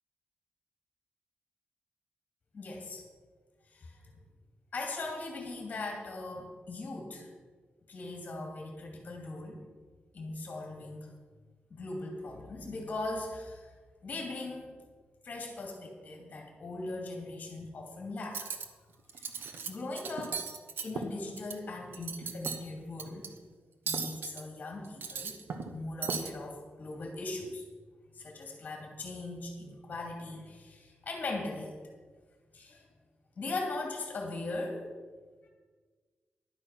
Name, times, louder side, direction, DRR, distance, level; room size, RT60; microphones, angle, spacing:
voice 1, 2.5-3.0 3.7-4.0 4.7-7.3 7.9-9.6 10.1-11.1 11.7-13.7 14.0-14.8 15.2-18.5 19.1-20.4 20.8-23.3 23.9-25.4 25.7-27.7 28.1-31.9 32.5-32.9 33.4-34.8 35.4-35.5, left 2 dB, 40° left, 0 dB, 2.6 m, -39 dB
Cutlery silverware, 18.2-18.7 19.1-19.7 20.0-21.6 21.9-22.6 23.0-23.3 23.9-24.4 24.9-25.7 26.0-26.3, right 5 dB, 70° right, 1.0 m, -36 dB
11.5 x 8.8 x 5.9 m, 1.5 s
wide cardioid pair, 165°, 4 cm